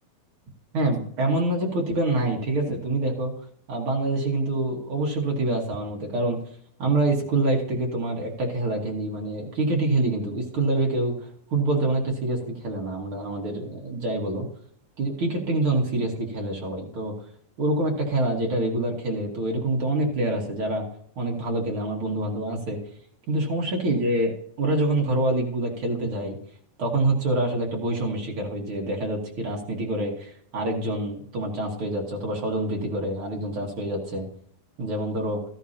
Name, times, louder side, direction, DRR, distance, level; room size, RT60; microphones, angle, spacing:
voice 1, 0.7-3.3 3.7-6.4 6.8-11.1 11.5-14.4 15.0-17.1 17.6-20.8 21.1-22.8 23.3-26.3 26.8-34.2 34.8-35.4, right 2 dB, 50° right, 0 dB, 1.7 m, -26 dB
13.5 x 12.0 x 2.8 m, 0.65 s
omnidirectional pair, 4.3 m